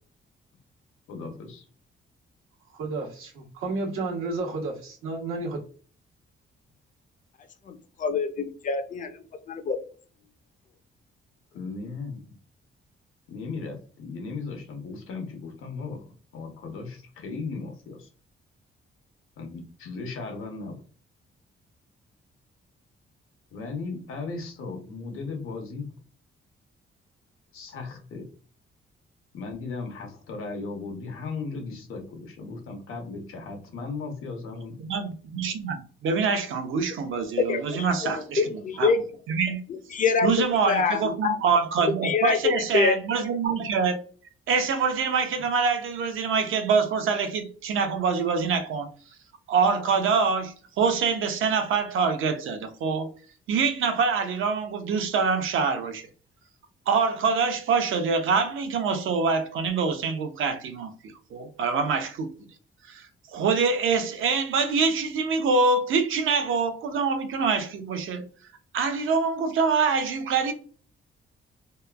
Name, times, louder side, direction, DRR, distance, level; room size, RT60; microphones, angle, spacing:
voice 1, 1.1-1.7 11.5-12.3 13.3-18.1 19.4-20.8 23.5-25.9 27.5-28.3 29.3-34.8, left 4 dB, 90° left, 0.8 m, -36 dB
voice 2, 2.7-5.6, right 3 dB, 90° right, 1.0 m, -31 dB
voice 3, 7.7-9.8 37.4-39.0 39.7-41.4 42.0-43.0, left 5 dB, 40° left, 0.4 m, -26 dB
voice 4, 34.8-38.9 39.3-39.6 40.2-43.9 44.5-48.9 49.5-53.1 53.5-56.1 56.9-60.9 61.3-62.3 62.9-68.2 68.7-70.5, right 5 dB, 75° right, 0.6 m, -25 dB
2.9 x 2.1 x 2.3 m
wide cardioid pair, 155°, 21 cm